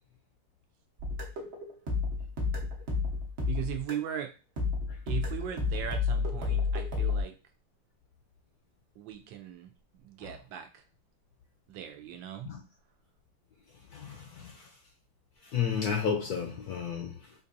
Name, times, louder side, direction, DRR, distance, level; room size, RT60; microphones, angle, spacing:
sound 1, 1.0-4.2 4.6-7.2, left 4 dB, 45° right, 0.9 m, -31 dB
voice 1, 3.4-4.3 5.1-7.3 9.0-9.7 10.0-10.8 11.7-12.5, right 10 dB, 80° right, 1.3 m, -38 dB
voice 2, 13.9-14.7 15.4-17.3, left 7 dB, 75° left, 0.9 m, -33 dB
4.5 x 2.6 x 2.6 m
omnidirectional pair, 2.1 m